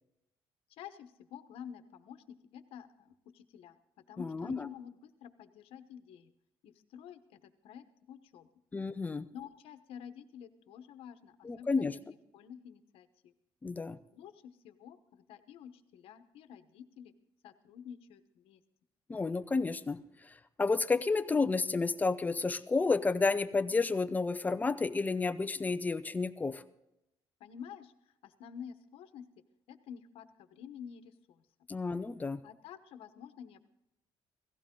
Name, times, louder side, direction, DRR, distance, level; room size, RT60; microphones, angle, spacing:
voice 1, 0.7-6.3 6.6-8.5 9.3-13.3 14.1-17.1 17.4-18.6 27.4-29.3 29.7-31.4 32.4-33.7, left 8 dB, 85° left, 10 dB, 1.1 m, -50 dB
voice 2, 4.2-4.6 8.7-9.3 11.4-11.9 13.6-14.0 19.1-20.0 20.3-26.6 31.7-32.4, left 4 dB, 15° left, 12 dB, 0.6 m, -31 dB
17.0 x 15.0 x 3.8 m, 0.86 s
cardioid pair, 150°, 9 cm